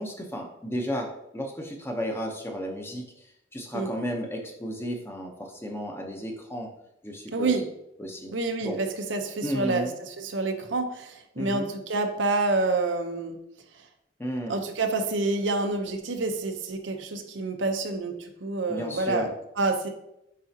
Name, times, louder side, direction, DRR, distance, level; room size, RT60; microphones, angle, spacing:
voice 1, 0.0-3.2 3.5-6.7 7.0-7.6 8.0-8.8 9.4-9.9 11.4-11.7 14.2-14.5 18.7-19.3, equal, 15° left, 2 dB, 0.8 m, -33 dB
voice 2, 7.3-7.6 8.3-9.9 10.2-13.4 14.5-19.9, right 3 dB, 90° right, 5 dB, 0.8 m, -28 dB
7.5 x 4.9 x 2.8 m, 0.81 s
head